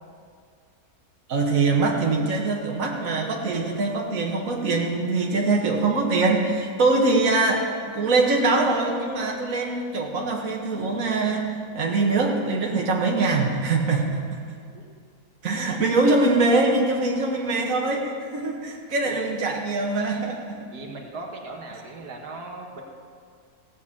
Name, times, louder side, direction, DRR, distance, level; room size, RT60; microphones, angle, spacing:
voice 1, 1.3-14.4 15.4-20.6, right 3 dB, 60° right, 0 dB, 2.0 m, -23 dB
voice 2, 14.4-14.9 19.0-19.3 20.7-22.8, right 3 dB, 90° right, 0 dB, 2.0 m, -38 dB
16.5 x 7.2 x 8.5 m, 2.2 s
omnidirectional pair, 1.6 m